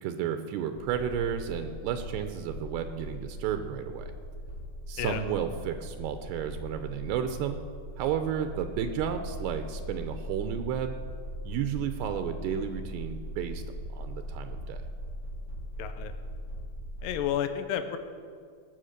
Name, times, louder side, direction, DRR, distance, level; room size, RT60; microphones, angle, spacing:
voice 1, 0.0-4.1 4.9-7.6 8.0-10.9 11.4-13.6 13.9-14.8, right 8 dB, 80° right, 7 dB, 2.7 m, -32 dB
sound 1, 0.8-17.3, equal, 35° left, 1.8 m, -40 dB
voice 2, 15.8-16.1 17.0-18.0, left 9 dB, 80° left, 8 dB, 2.1 m, -31 dB
19.0 x 7.1 x 6.6 m, 2.1 s
omnidirectional pair, 4.8 m